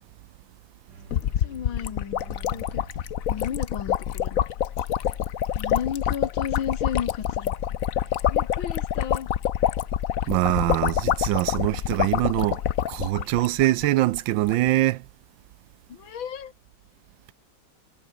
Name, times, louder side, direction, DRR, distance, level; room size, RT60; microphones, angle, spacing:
sound 1, 0.9-6.4, right 5 dB, 60° right, 3.2 m, -51 dB
sound 2, 1.1-13.9 14.1-14.2 14.4-14.7, left 10 dB, 55° left, 1.0 m, -27 dB
voice 1, 1.4-2.8 3.3-4.4 5.6-7.8 8.3-9.3 15.9-16.5, left 8 dB, 80° left, 2.4 m, -34 dB
voice 2, 10.3-12.6 12.9-15.0, right 16 dB, 75° right, 1.3 m, -23 dB
omnidirectional pair, 2.1 m